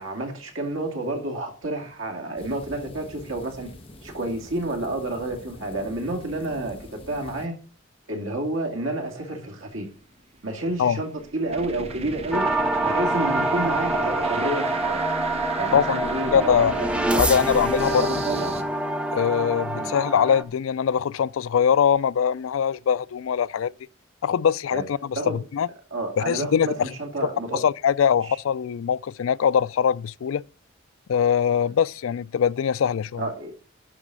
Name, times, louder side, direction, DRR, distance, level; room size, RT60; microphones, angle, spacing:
voice 1, 0.0-3.7 4.0-7.5 8.1-9.9 10.4-12.5 12.8-15.0 15.6-17.5 17.8-18.5 19.7-19.9 24.7-24.9 25.1-25.4 25.9-27.6 28.2-28.4 31.6-31.7 33.2-33.5, right 1 dB, 85° right, 2.4 m, -30 dB
sound 1, 2.4-7.5, left 1 dB, 30° left, 1.1 m, -45 dB
sound 2, 10.5-18.6, right 2 dB, 30° right, 0.9 m, -35 dB
sound 3, 12.3-20.4, right 2 dB, 5° right, 0.8 m, -26 dB
voice 2, 15.7-16.7 17.2-18.1 19.1-23.7 24.2-25.7 26.2-26.7 27.5-30.4 31.1-33.2, left 7 dB, 85° left, 0.4 m, -22 dB
11.5 x 4.1 x 6.3 m
head